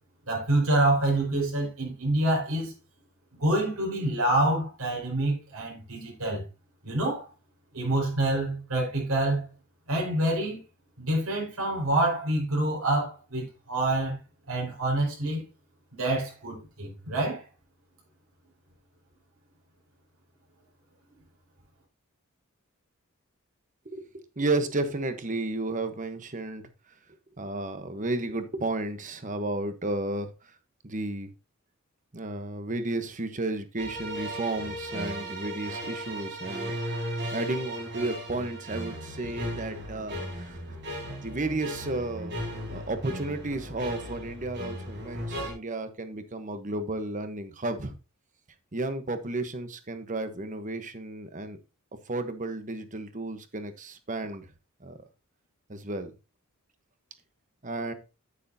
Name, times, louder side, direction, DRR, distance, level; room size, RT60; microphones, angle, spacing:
voice 1, 0.3-2.7 3.4-6.4 6.8-7.3 7.7-9.5 9.9-10.6 11.0-14.2 14.5-15.4 15.9-17.4, right 1 dB, 85° right, 5.0 m, -27 dB
voice 2, 23.9-26.6 27.4-30.5 30.8-31.3 32.1-40.6 41.2-42.3 42.7-48.0 48.7-51.6 52.1-54.5 54.8-55.0 55.7-56.1 57.6-57.9, right 2 dB, 35° right, 1.1 m, -33 dB
sound 1, 33.8-45.5, equal, 55° right, 4.0 m, -36 dB
9.7 x 9.3 x 2.8 m
head